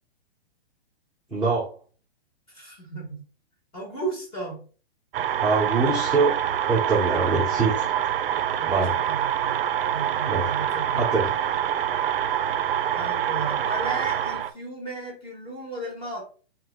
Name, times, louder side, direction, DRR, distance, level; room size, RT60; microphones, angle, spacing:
voice 1, 1.3-1.7 5.4-6.3 6.7-7.8 8.7-8.9 10.3-10.4 10.9-11.3, right 4 dB, 5° right, -9 dB, 0.7 m, -23 dB
voice 2, 2.5-3.2 3.7-4.6 8.6-9.6 9.9-11.3 13.0-16.2, right 2 dB, 15° left, -2 dB, 1.7 m, -35 dB
sound 1, 5.1-14.5, right 10 dB, 60° right, 0.4 m, -26 dB
4.6 x 3.9 x 2.3 m, 0.39 s
hypercardioid pair, 155°, 33 cm